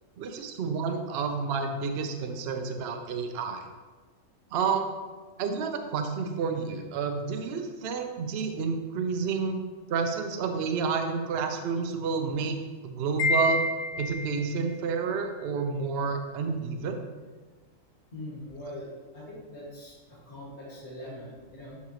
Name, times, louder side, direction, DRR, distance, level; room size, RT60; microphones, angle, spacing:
voice 1, 0.2-3.6 4.5-4.9 5.4-9.6 9.9-12.6 12.8-13.7 14.0-17.0, right 5 dB, 55° right, 5 dB, 0.7 m, -30 dB
Wind chime, 13.2-14.6, left 2 dB, 75° left, 1.1 m, -28 dB
voice 2, 18.1-18.9 19.1-21.8, left 1 dB, 50° left, -7 dB, 2.6 m, -42 dB
11.0 x 3.7 x 3.1 m, 1.4 s
omnidirectional pair, 1.5 m